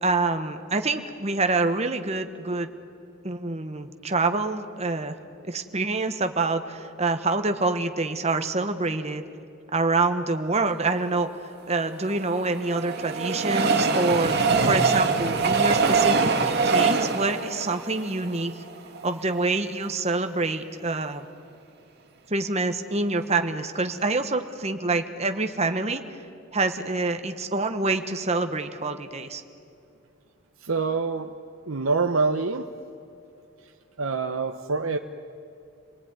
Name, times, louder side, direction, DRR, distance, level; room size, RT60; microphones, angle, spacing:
voice 1, 0.0-2.7 3.2-5.2 5.4-9.2 9.7-11.3 11.7-16.3 16.6-18.5 19.0-21.3 22.3-26.0 26.5-29.4, right 3 dB, 30° right, 7 dB, 1.3 m, -26 dB
Train, 11.8-19.0 19.6-19.7 19.9-20.0, right 4 dB, 50° right, 2.0 m, -23 dB
voice 2, 30.6-31.3 31.7-32.6 34.0-35.0, right 4 dB, 75° right, 4 dB, 1.0 m, -25 dB
28.0 x 19.5 x 9.6 m, 2.5 s
head